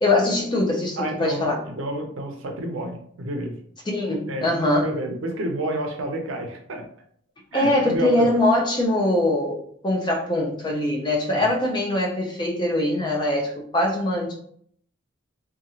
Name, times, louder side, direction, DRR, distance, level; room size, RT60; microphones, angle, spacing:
voice 1, 0.0-1.6 3.9-4.9 7.5-14.3, left 1 dB, 20° left, 0 dB, 0.5 m, -22 dB
voice 2, 1.0-3.5 4.3-6.8 7.5-8.3 11.3-11.5, right 1 dB, 70° right, 3 dB, 0.6 m, -30 dB
2.9 x 2.3 x 2.7 m, 0.63 s
head